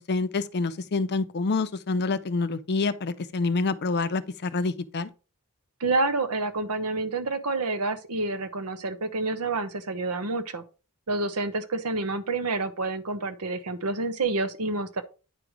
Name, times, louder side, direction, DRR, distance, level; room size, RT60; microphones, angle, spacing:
voice 1, 0.0-5.1, left 3 dB, 50° left, 0.6 m, -27 dB
voice 2, 5.8-10.6 11.1-15.0, right 3 dB, 85° right, 0.9 m, -28 dB
9.5 x 3.2 x 5.0 m
head